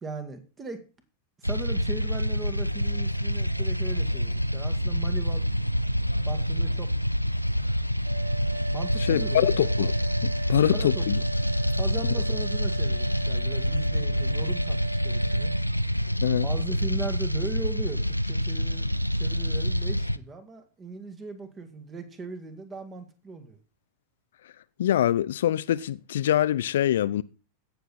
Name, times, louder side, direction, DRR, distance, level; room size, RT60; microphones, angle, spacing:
voice 1, 0.0-0.8 1.4-5.5 6.3-6.9 8.7-9.7 10.7-11.3 11.8-15.5 16.4-23.6, right 3 dB, 20° right, 1.9 m, -38 dB
sound 1, 1.4-20.2, equal, 90° right, 0.5 m, -27 dB
sound 2, 8.1-15.6, right 3 dB, 70° right, 0.9 m, -38 dB
voice 2, 9.0-9.9 10.2-11.2 16.2-16.5 24.8-27.2, left 11 dB, 60° left, 0.5 m, -24 dB
16.5 x 6.9 x 4.2 m
figure-of-eight pair, 90°, 0 cm